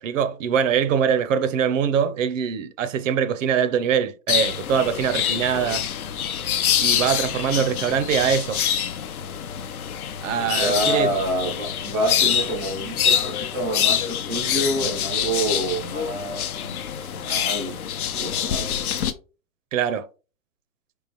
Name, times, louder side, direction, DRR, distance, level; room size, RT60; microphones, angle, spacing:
voice 1, 0.0-5.8 6.8-8.6 10.2-11.1 19.7-20.1, right 7 dB, 55° right, 0.7 m, -23 dB
sound 1, 4.3-19.1, left 9 dB, 70° left, 0.8 m, -25 dB
voice 2, 7.3-7.9 10.3-18.7, right 1 dB, ahead, 0.3 m, -28 dB
4.7 x 3.6 x 3.0 m
hypercardioid pair, 135°, 46 cm